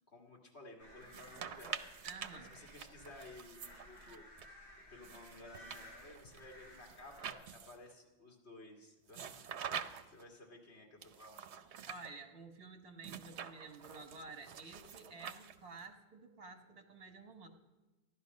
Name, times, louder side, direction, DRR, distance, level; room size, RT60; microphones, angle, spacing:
voice 1, 0.1-1.8 2.3-4.6 4.9-9.5 10.1-11.4, left 2 dB, 80° left, -2 dB, 2.2 m, -55 dB
sound 1, 0.8-7.3, left 1 dB, 55° left, 6.4 m, -57 dB
sound 2, 1.0-4.5 5.0-7.9 9.1-10.2 11.0-12.1 13.0-15.8, right 8 dB, 85° right, 1.0 m, -47 dB
voice 2, 2.0-2.5 11.9-17.5, right 4 dB, 60° right, 5 dB, 1.6 m, -51 dB
14.5 x 11.5 x 5.3 m, 1.2 s
omnidirectional pair, 1.1 m